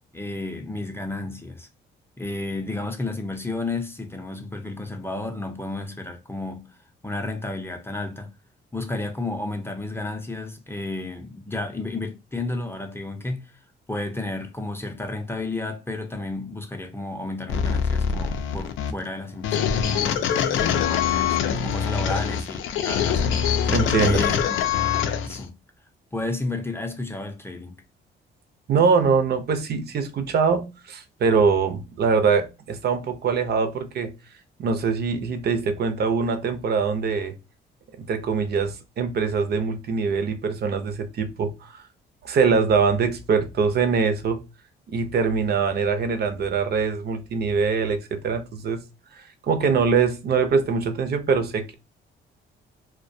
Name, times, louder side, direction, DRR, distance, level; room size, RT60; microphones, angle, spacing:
voice 1, 0.1-1.7 2.2-6.7 7.0-8.3 8.7-13.5 13.9-23.7 24.0-24.6 25.2-25.5 26.1-27.8, left 2 dB, 10° left, 0.5 m, -32 dB
sound 1, 17.5-25.4, left 8 dB, 80° left, 0.4 m, -24 dB
voice 2, 23.7-24.2 28.7-34.1 34.6-37.3 38.0-41.8 42.2-44.4 44.9-48.8 49.1-51.7, right 5 dB, 55° right, 0.5 m, -23 dB
2.2 x 2.2 x 2.6 m
cardioid pair, 90°, 20 cm